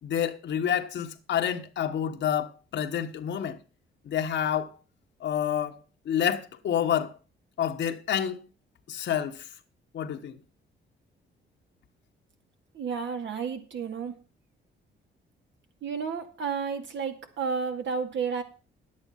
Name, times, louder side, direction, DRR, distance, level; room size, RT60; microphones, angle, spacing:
voice 1, 0.0-3.6 4.0-4.7 5.2-5.8 6.0-7.1 7.6-8.4 8.9-9.5 9.9-10.4, left 9 dB, 65° left, 1.3 m, -28 dB
voice 2, 12.7-14.1 15.8-18.4, right 6 dB, 65° right, 2.3 m, -31 dB
10.5 x 8.8 x 5.7 m
cardioid pair, 90°, 20 cm